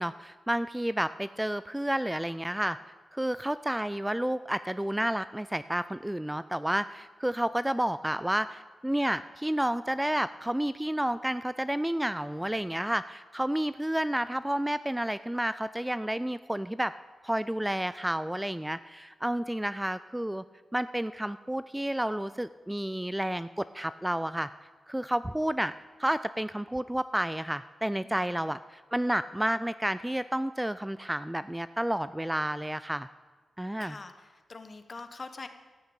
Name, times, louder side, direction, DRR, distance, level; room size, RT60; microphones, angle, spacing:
voice 1, 0.0-2.8 3.1-16.9 17.2-20.4 20.7-24.5 24.9-25.7 26.0-33.1 33.6-34.0, right 1 dB, 10° right, 14 dB, 0.3 m, -30 dB
voice 2, 28.0-28.6 33.8-35.5, left 3 dB, 40° left, 9 dB, 1.2 m, -44 dB
14.0 x 6.6 x 8.8 m, 1.3 s
cardioid pair, 85°, 0 cm